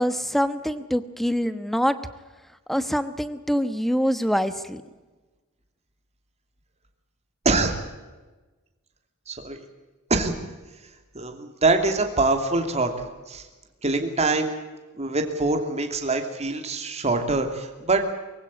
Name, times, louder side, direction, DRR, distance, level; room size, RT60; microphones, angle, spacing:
voice 1, 0.0-2.0 2.7-4.8, equal, ahead, 12 dB, 1.1 m, -24 dB
voice 2, 9.3-9.6 10.1-10.3 11.1-12.9 13.3-13.4 13.8-14.5 15.0-18.1, right 3 dB, 30° right, 5 dB, 2.9 m, -24 dB
24.5 x 16.0 x 8.6 m, 1.2 s
head